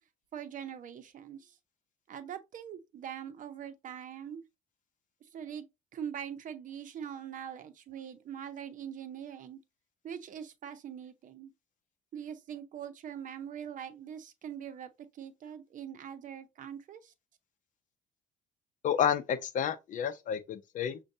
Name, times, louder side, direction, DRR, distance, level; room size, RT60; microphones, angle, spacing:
voice 1, 0.3-1.6 2.1-4.4 5.2-5.7 5.9-9.6 10.0-11.5 12.1-17.1, right 8 dB, 50° right, 0.7 m, -43 dB
voice 2, 18.8-21.0, left 8 dB, 50° left, 0.6 m, -30 dB
6.2 x 2.3 x 2.7 m
cardioid pair, 110°, 17 cm